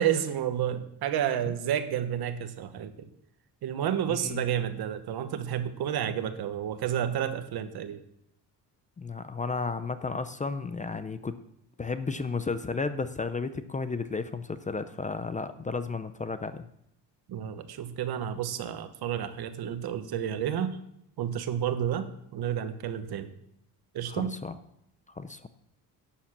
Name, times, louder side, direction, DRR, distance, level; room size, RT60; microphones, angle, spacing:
voice 1, 0.0-3.1 3.6-8.0 17.3-20.8 21.2-22.1 22.3-23.3 23.9-24.4, right 9 dB, 70° right, 10 dB, 1.2 m, -30 dB
voice 2, 4.1-4.4 9.0-11.4 11.8-16.6 24.1-24.5 25.2-25.5, left 4 dB, 20° left, 11 dB, 0.5 m, -33 dB
11.5 x 7.2 x 7.3 m, 0.78 s
cardioid pair, 145°, 40 cm